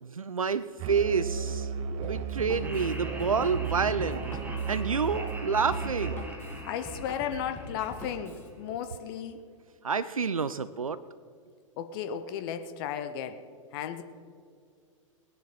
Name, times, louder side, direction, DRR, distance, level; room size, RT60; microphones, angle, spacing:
voice 1, 0.0-4.2 4.7-6.3 9.8-11.0, right 5 dB, 85° right, 15 dB, 0.4 m, -29 dB
Musical instrument, 0.8-6.4, right 6 dB, 35° right, 0.9 m, -34 dB
Drum kit, 2.0-8.5, left 2 dB, 15° left, 2.2 m, -44 dB
Laughter, 2.6-8.8, equal, 10° right, 1.8 m, -43 dB
voice 2, 6.6-9.4 11.8-13.4 13.7-14.0, left 8 dB, 45° left, 9 dB, 0.9 m, -34 dB
19.0 x 10.5 x 4.2 m, 2.2 s
figure-of-eight pair, 105°, 17 cm